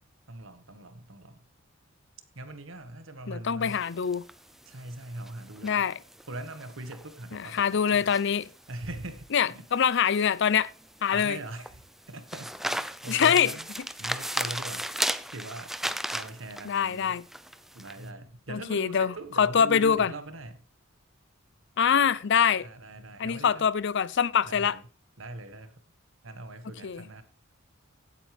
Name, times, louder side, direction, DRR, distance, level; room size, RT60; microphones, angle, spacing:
voice 1, 0.3-1.4 2.3-3.8 4.6-5.9 6.3-8.4 8.7-9.7 11.1-13.7 14.0-15.0 15.3-15.7 16.1-17.2 17.7-20.6 22.6-23.7 24.4-24.8 25.2-25.8 26.2-27.2, right 2 dB, 70° right, 1.6 m, -41 dB
voice 2, 3.3-4.2 5.6-5.9 7.5-8.4 9.3-10.7 11.0-11.4 13.1-13.5 16.6-17.2 18.5-20.1 21.8-22.7 23.2-24.8 26.8-27.0, left 7 dB, 60° left, 0.5 m, -24 dB
sound 1, 3.6-18.0, right 1 dB, ahead, 0.5 m, -36 dB
16.0 x 8.4 x 3.4 m
head